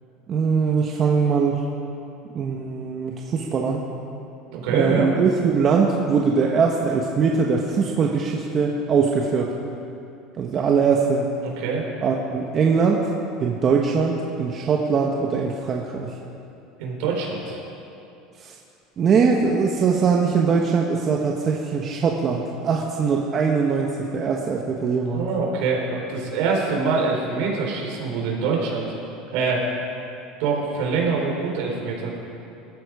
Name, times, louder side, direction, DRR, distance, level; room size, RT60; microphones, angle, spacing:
voice 1, 0.3-1.6 2.3-3.8 4.7-9.5 10.4-11.3 12.0-13.1 13.4-16.1 18.4-18.5 19.0-25.3, right 5 dB, 30° right, 0 dB, 1.2 m, -21 dB
voice 2, 4.5-5.1 11.4-11.8 16.8-17.6 25.1-28.9 29.3-29.7 30.4-32.1, right 4 dB, 70° right, -1 dB, 4.3 m, -24 dB
21.0 x 13.0 x 4.9 m, 2.7 s
cardioid pair, 145°, 0 cm